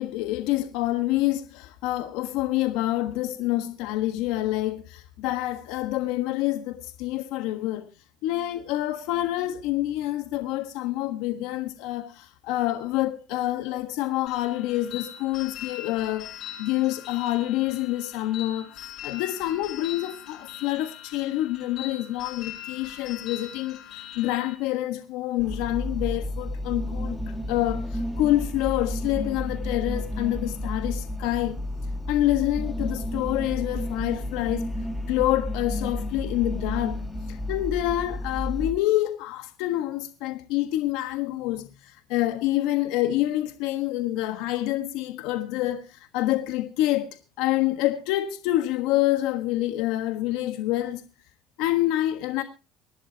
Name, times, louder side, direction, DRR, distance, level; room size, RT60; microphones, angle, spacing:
voice 1, 0.0-7.9 8.2-31.6 32.1-34.7 35.1-37.0 37.3-51.0 51.6-52.4, left 15 dB, 80° left, 1.4 m, -27 dB
sound 1, 14.3-24.5, left 11 dB, 65° left, 8.0 m, -41 dB
sound 2, 25.4-38.7, left 1 dB, 5° left, 2.2 m, -31 dB
24.5 x 11.0 x 2.8 m
supercardioid pair, 90°, 0 cm